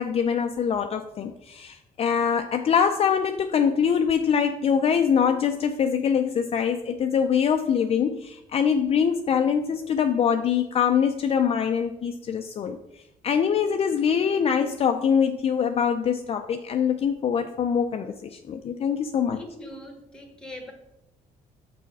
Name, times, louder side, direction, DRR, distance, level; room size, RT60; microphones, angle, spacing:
voice 1, 0.0-12.8 13.2-19.4, left 7 dB, 45° left, 6 dB, 0.4 m, -24 dB
voice 2, 19.3-20.7, left 1 dB, 5° left, 4 dB, 1.3 m, -41 dB
5.8 x 4.2 x 6.0 m, 0.86 s
cardioid pair, 115°, 14 cm